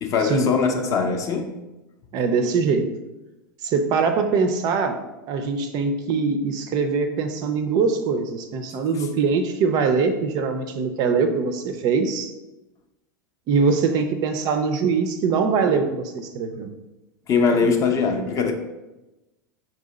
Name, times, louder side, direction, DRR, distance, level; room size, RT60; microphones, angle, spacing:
voice 1, 0.0-1.5 17.3-18.5, left 5 dB, 30° left, 4 dB, 0.5 m, -21 dB
voice 2, 2.1-2.9 3.6-5.0 5.3-12.3 13.5-16.7 17.5-17.8, right 5 dB, 35° right, 7 dB, 0.4 m, -22 dB
4.5 x 2.7 x 3.9 m, 1.0 s
figure-of-eight pair, 85°, 11 cm